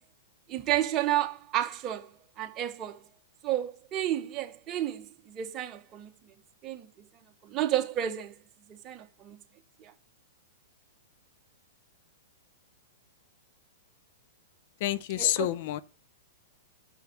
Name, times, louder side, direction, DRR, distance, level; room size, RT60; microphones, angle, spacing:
voice 1, 0.5-2.1 2.4-3.0 3.4-6.1 6.6-6.9 7.4-8.4 8.7-9.4 9.8-9.9 15.2-15.5, right 12 dB, 30° right, 1.2 m, -31 dB
voice 2, 14.8-15.8, left 14 dB, 55° left, 0.5 m, -28 dB
6.4 x 6.3 x 6.2 m
hypercardioid pair, 130°, 0 cm